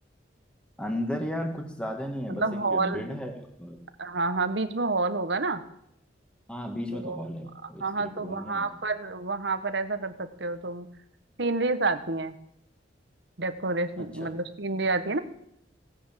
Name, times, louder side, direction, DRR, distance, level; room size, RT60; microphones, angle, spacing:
voice 1, 0.8-2.4 2.7-3.8 6.5-8.7 14.0-14.3, equal, 5° left, 4 dB, 1.9 m, -34 dB
voice 2, 2.3-3.0 4.0-5.6 7.0-7.3 7.8-10.9 11.4-12.4 13.4-15.2, right 3 dB, 70° right, 9 dB, 1.3 m, -29 dB
17.5 x 10.0 x 7.5 m, 0.78 s
head